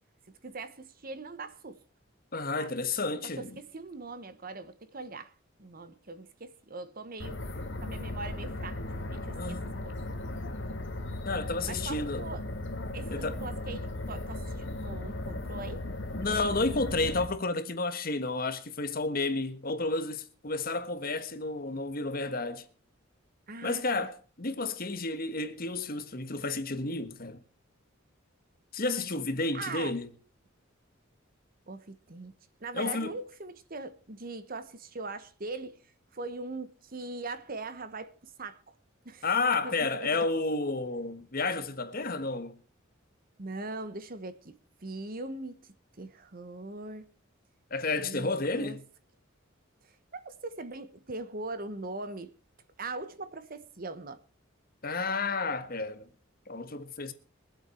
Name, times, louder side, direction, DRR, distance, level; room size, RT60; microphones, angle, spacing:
voice 1, 0.4-1.8 2.6-2.7 3.2-5.3 5.6-9.6 9.8-10.0 11.6-12.5 12.9-15.8 23.5-24.1 29.5-29.9 31.7-32.3 32.6-35.8 36.1-38.1 38.4-38.7 39.0-39.2 39.6-40.1 43.4-45.7 46.0-47.1 48.0-48.8 49.8-52.3 52.8-54.2, right 3 dB, 45° right, 1.1 m, -41 dB
voice 2, 2.3-3.5 9.4-9.9 11.2-12.3 13.1-13.4 16.1-22.6 23.6-27.4 28.7-30.1 32.7-33.2 39.2-42.6 47.7-48.8 54.8-56.0 56.5-57.1, left 3 dB, 45° left, 1.4 m, -31 dB
sound 1, 7.2-17.3, left 1 dB, 65° left, 2.1 m, -37 dB
23.0 x 7.8 x 4.4 m
head